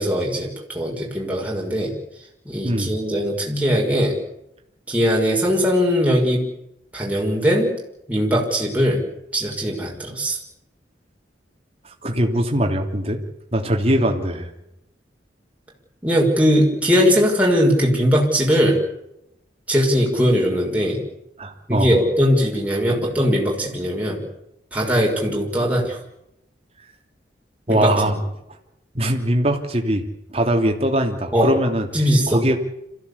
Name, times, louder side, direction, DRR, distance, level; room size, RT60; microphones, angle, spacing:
voice 1, 0.0-2.0 2.4-4.2 4.9-6.5 6.9-7.8 8.1-9.1 9.3-10.4 16.0-18.8 19.7-21.0 21.7-24.2 24.7-26.0 27.7-28.1 31.3-31.5 31.9-32.4, equal, 10° right, -2 dB, 5.9 m, -20 dB
voice 2, 2.6-2.9 12.0-13.2 13.5-14.5 21.4-22.0 27.7-28.1 28.9-30.0 30.3-31.9 32.3-32.6, right 1 dB, 35° right, 3 dB, 3.2 m, -21 dB
26.5 x 15.5 x 8.4 m, 0.83 s
head